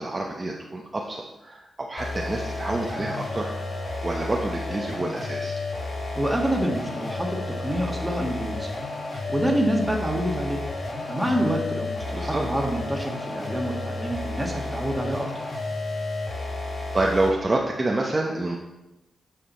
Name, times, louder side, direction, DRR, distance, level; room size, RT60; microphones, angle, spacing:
voice 1, 0.0-3.5 4.0-5.6 12.1-12.4 16.9-18.6, right 2 dB, 25° right, -1 dB, 0.9 m, -27 dB
sound 1, 2.0-17.5, left 2 dB, 50° left, 1.8 m, -32 dB
voice 2, 6.1-8.7 9.1-10.6 11.1-15.3, right 1 dB, 5° right, 0 dB, 1.7 m, -27 dB
8.9 x 5.0 x 5.6 m, 0.98 s
cardioid pair, 95°, 0 cm